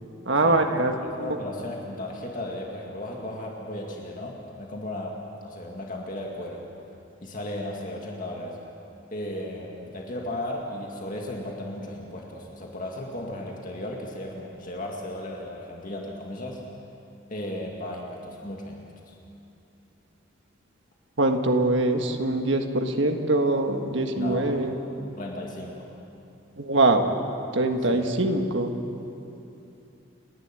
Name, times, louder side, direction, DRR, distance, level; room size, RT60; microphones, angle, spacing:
voice 1, 0.2-1.4 21.2-24.7 26.6-27.1 27.5-28.7, right 2 dB, 70° right, 5 dB, 1.7 m, -23 dB
voice 2, 1.2-6.6 7.2-8.6 9.1-16.6 17.3-18.8 19.1-19.2 24.2-24.7 25.2-25.9 27.9-28.0, left 1 dB, 45° left, -1 dB, 2.1 m, -35 dB
29.5 x 11.5 x 9.1 m, 2.8 s
head